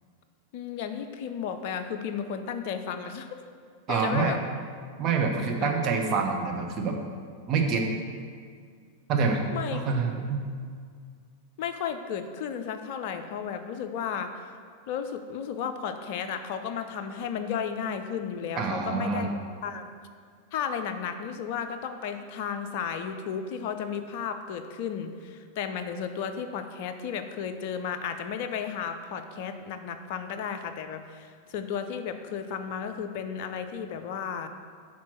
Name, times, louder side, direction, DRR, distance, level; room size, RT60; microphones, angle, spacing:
voice 1, 0.5-3.3 3.9-4.4 5.6-5.7 9.5-9.8 11.6-14.5 14.9-19.9 20.5-34.5, left 7 dB, 50° left, 8 dB, 0.5 m, -34 dB
voice 2, 3.9-4.3 5.0-7.0 7.5-7.9 9.1-9.4 9.7-10.5 18.6-19.3, right 4 dB, 35° right, 2 dB, 0.9 m, -26 dB
5.9 x 4.4 x 5.8 m, 2.1 s
figure-of-eight pair, 90°, 0 cm